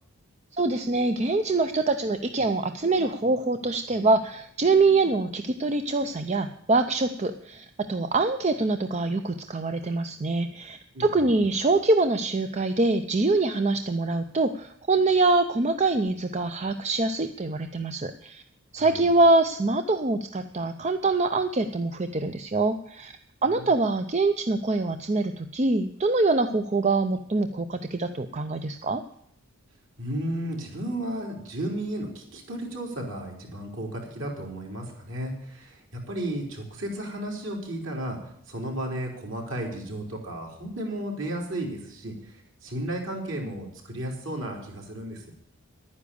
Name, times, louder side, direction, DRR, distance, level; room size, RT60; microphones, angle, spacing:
voice 1, 0.5-18.4 18.7-23.1 23.4-29.0, right 3 dB, 30° right, 8 dB, 0.5 m, -24 dB
voice 2, 10.9-11.5 18.8-19.0 23.4-23.7 30.0-38.2 38.5-45.3, right 1 dB, 55° right, 0 dB, 3.8 m, -34 dB
11.5 x 9.8 x 6.9 m, 0.69 s
head